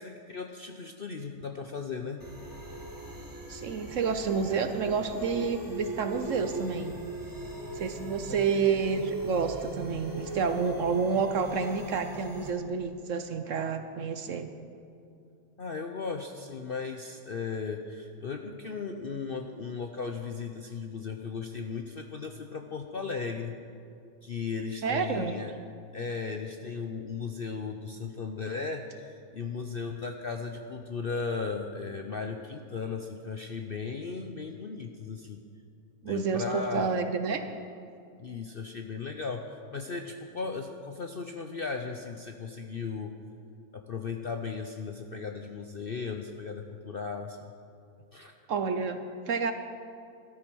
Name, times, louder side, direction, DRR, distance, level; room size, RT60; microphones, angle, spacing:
voice 1, 0.0-2.2 8.3-8.4 15.6-23.5 24.2-25.5 25.9-35.4 36.1-36.9 38.2-43.1 43.7-47.4 48.1-48.3, left 5 dB, 50° left, 4 dB, 0.7 m, -36 dB
sound 1, 2.2-12.5, right 1 dB, 15° right, 1.4 m, -40 dB
voice 2, 3.5-7.0 7.7-14.5 24.8-25.3 36.0-37.4 48.5-49.5, right 5 dB, 60° right, 8 dB, 1.0 m, -29 dB
13.0 x 13.0 x 6.2 m, 2.5 s
omnidirectional pair, 1.7 m